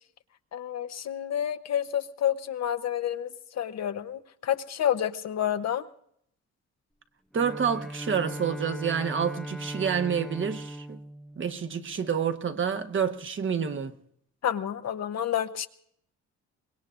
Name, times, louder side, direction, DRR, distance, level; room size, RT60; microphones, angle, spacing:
voice 1, 0.5-3.3 3.6-5.8 14.4-15.7, left 10 dB, 60° left, 0.9 m, -29 dB
Bowed string instrument, 7.3-12.4, right 1 dB, ahead, 0.6 m, -39 dB
voice 2, 7.3-11.0 11.4-13.9, right 7 dB, 40° right, 1.1 m, -28 dB
24.5 x 21.0 x 2.5 m
cardioid pair, 90°, 30 cm